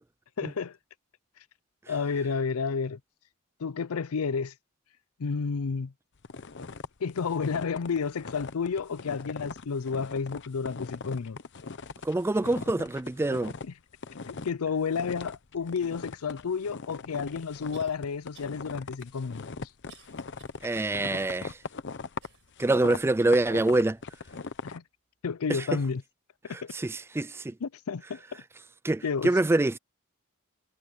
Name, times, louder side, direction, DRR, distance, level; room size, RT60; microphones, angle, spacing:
voice 1, 0.4-0.8 1.9-3.0 3.6-4.5 5.2-5.9 7.0-11.4 13.6-13.7 14.3-19.5 24.6-24.8 25.2-26.0 26.4-26.7 27.6-28.4 29.0-29.3, left 5 dB, 85° left, 0.5 m, -31 dB
sound 1, 6.2-13.7 13.9-14.6 14.9-24.8, left 4 dB, 55° left, 0.8 m, -40 dB
voice 2, 12.0-13.5 20.6-21.6 22.6-24.0 25.5-25.6 26.7-27.5 28.8-29.7, right 2 dB, 10° right, 0.3 m, -25 dB
sound 2, 16.7-16.8 17.7-18.0 18.3-18.6 19.0-20.6 21.1-21.2 22.2-23.0 23.5-23.6 24.4-24.5, right 10 dB, 60° right, 5.3 m, -58 dB
head